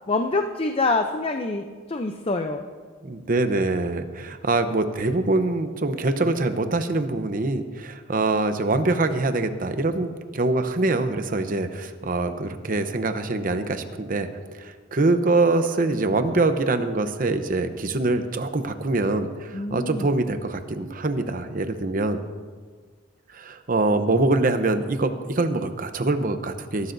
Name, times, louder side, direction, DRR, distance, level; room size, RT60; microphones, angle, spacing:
voice 1, 0.1-2.6 19.5-20.1, left 3 dB, 30° left, 5 dB, 0.5 m, -26 dB
voice 2, 3.0-14.3 14.5-22.2 23.3-26.9, right 2 dB, 45° right, 8 dB, 0.8 m, -24 dB
21.5 x 12.0 x 2.7 m, 1.5 s
head